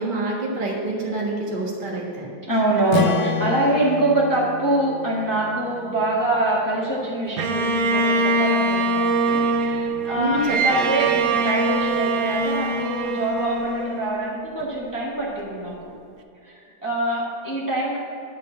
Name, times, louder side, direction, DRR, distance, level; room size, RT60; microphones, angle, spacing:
voice 1, 0.0-2.3 10.2-10.9, right 1 dB, 25° right, -4 dB, 1.4 m, -26 dB
voice 2, 2.4-15.7 16.4-18.0, right 2 dB, 10° left, -5 dB, 1.5 m, -24 dB
Strum, 2.9-7.2, left 8 dB, 75° left, 1.4 m, -30 dB
Bowed string instrument, 7.4-14.6, right 2 dB, 75° right, 0.8 m, -23 dB
10.5 x 5.5 x 7.4 m, 2.6 s
omnidirectional pair, 2.3 m